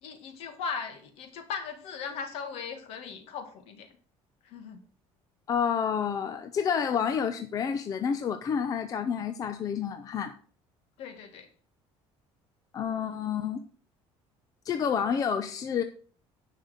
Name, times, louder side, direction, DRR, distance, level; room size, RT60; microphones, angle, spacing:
voice 1, 0.0-3.9 4.4-4.8 11.0-11.5, left 6 dB, 65° left, 6 dB, 2.0 m, -38 dB
voice 2, 5.5-10.3 12.7-13.6 14.6-15.8, left 7 dB, 30° left, 8 dB, 0.6 m, -29 dB
10.0 x 5.5 x 6.4 m, 0.43 s
cardioid pair, 160°, 11 cm